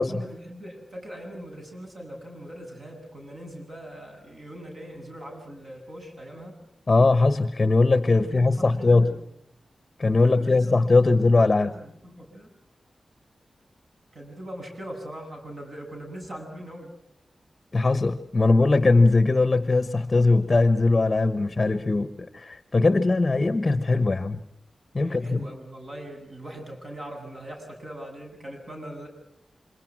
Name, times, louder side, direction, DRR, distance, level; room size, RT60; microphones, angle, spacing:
voice 1, 0.0-6.6 8.1-9.2 10.2-12.5 14.1-16.9 25.0-29.1, right 1 dB, 45° right, 7.9 m, -41 dB
voice 2, 6.9-9.1 10.0-11.7 17.7-24.4 24.9-25.5, left 3 dB, 30° left, 1.0 m, -20 dB
28.5 x 26.5 x 6.1 m
wide cardioid pair, 140°, 0 cm